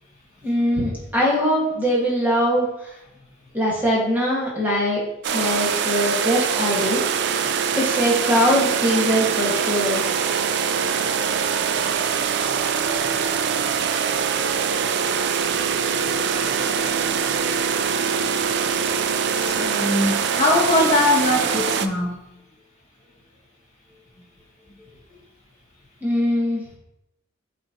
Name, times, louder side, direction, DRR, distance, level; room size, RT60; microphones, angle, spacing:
voice 1, 0.4-2.7 3.5-5.0 5.3-7.0 7.7-10.0 26.0-26.6, equal, 10° right, -5 dB, 1.6 m, -21 dB
sound 1, 5.2-21.9, right 7 dB, 55° right, 0.4 m, -23 dB
voice 2, 19.3-22.2, left 2 dB, 35° left, -4 dB, 2.2 m, -21 dB
8.1 x 4.1 x 2.9 m, 0.86 s
head